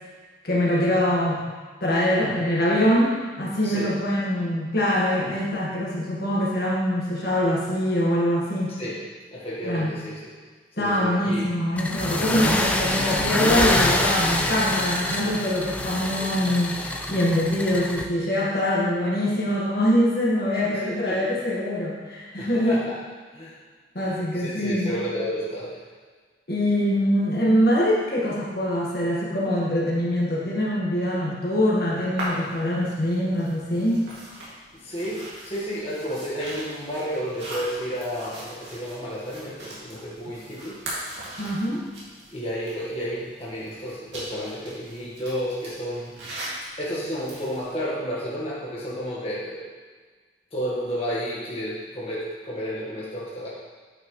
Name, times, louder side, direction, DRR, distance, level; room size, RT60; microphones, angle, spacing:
voice 1, 0.4-1.4 1.8-8.7 9.6-10.0 10.8-16.8 17.1-22.8 23.9-24.9 26.5-34.1 41.4-41.8, equal, 55° left, -5 dB, 1.5 m, -23 dB
voice 2, 9.3-10.3 10.7-11.5 16.7-17.0 20.7-21.3 22.4-22.9 23.3-23.6 24.0-25.8 34.7-40.8 42.3-46.1 46.8-49.7 50.5-53.5, equal, 30° left, -7 dB, 1.4 m, -31 dB
sound 1, 11.8-18.0, left 1 dB, 10° left, 0.4 m, -25 dB
sound 2, 32.2-47.7, right 1 dB, 80° right, 2.3 m, -40 dB
8.9 x 5.8 x 3.1 m, 1.5 s
head